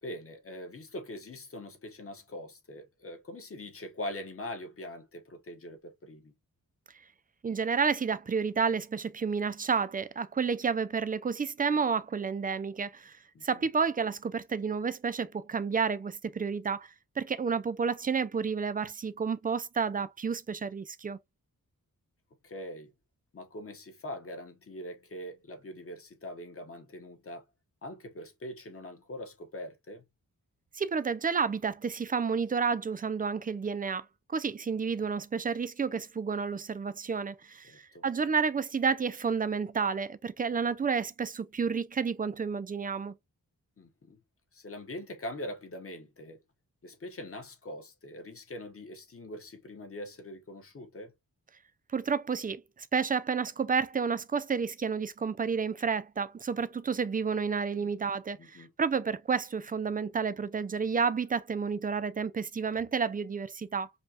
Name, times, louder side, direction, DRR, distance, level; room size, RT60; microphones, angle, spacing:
voice 1, 0.0-6.3 13.3-13.7 22.4-22.9 23.3-27.4 27.8-30.0 37.7-38.0 43.8-44.2 44.5-46.4 46.8-51.1 57.8-57.9 58.4-58.7, left 1 dB, 40° left, 1.0 m, -42 dB
voice 2, 7.4-21.2 30.7-43.1 51.9-63.9, right 5 dB, 25° right, 0.4 m, -30 dB
5.4 x 2.3 x 2.8 m
wide cardioid pair, 155°, 34 cm